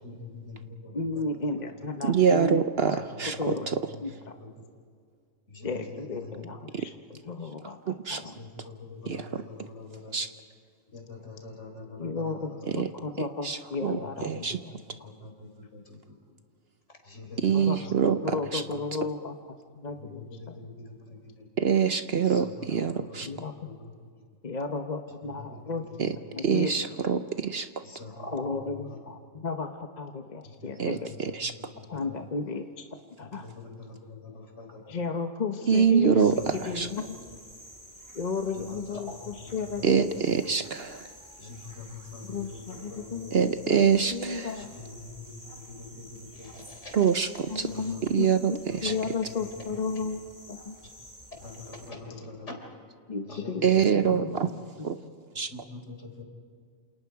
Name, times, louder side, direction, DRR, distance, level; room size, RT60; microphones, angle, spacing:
voice 1, 0.0-1.2 2.9-3.5 3.9-4.0 4.4-4.5 5.5-6.3 6.7-6.8 8.4-10.2 10.9-12.8 14.0-16.2 17.0-18.4 18.6-18.8 20.0-21.5 22.2-23.3 23.6-23.7 25.2-25.7 26.3-26.4 27.8-29.0 30.4-32.1 33.4-35.0 36.2-36.3 36.9-37.0 38.5-39.9 40.5-40.6 41.4-43.5 44.5-47.1 47.5-48.0 48.7-49.1 50.0-50.1 51.4-52.6 53.2-53.9 55.5-56.2, left 3 dB, 60° left, 2 dB, 4.2 m, -44 dB
voice 2, 0.9-3.7 3.9-4.3 5.6-8.3 8.6-8.7 12.0-14.7 15.0-15.1 17.5-18.0 18.2-20.6 23.2-23.5 24.4-25.9 26.3-27.1 28.3-31.1 31.9-32.9 33.2-33.5 34.9-37.2 38.1-40.5 42.2-43.5 43.8-44.7 47.5-50.2 50.5-50.8 53.1-55.1, left 4 dB, 35° left, 5 dB, 0.9 m, -34 dB
voice 3, 2.0-3.4 8.1-8.2 9.1-9.4 10.1-10.3 12.8-12.9 13.4-13.6 13.8-14.0 14.2-14.6 17.4-18.2 18.5-18.6 21.6-23.3 26.0-26.1 26.4-27.7 30.8-31.5 35.7-36.3 36.8-36.9 39.8-41.0 43.3-44.5 46.9-47.7 48.1-48.9 53.6-54.5 54.8-54.9 55.4-55.5, right 7 dB, 55° right, 10 dB, 0.9 m, -24 dB
sound 1, 36.2-51.9, equal, 15° right, 2.8 m, -50 dB
28.0 x 28.0 x 4.8 m, 2.2 s
omnidirectional pair, 1.4 m